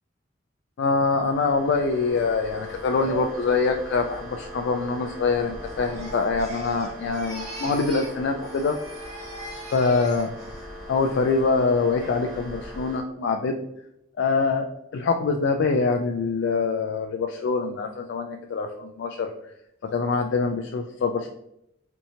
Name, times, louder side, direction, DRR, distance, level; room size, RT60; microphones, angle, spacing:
voice 1, 0.8-8.8 9.7-10.3 10.9-13.6 14.2-14.6 14.9-19.3 19.8-21.3, left 4 dB, 65° left, 4 dB, 0.3 m, -24 dB
sound 1, 0.8-13.0, equal, 5° right, 1.1 m, -40 dB
Crying sobbing, 5.6-8.2 8.4-10.6 11.0-11.4, right 1 dB, 35° right, 1.2 m, -41 dB
4.5 x 2.8 x 2.7 m, 0.79 s
head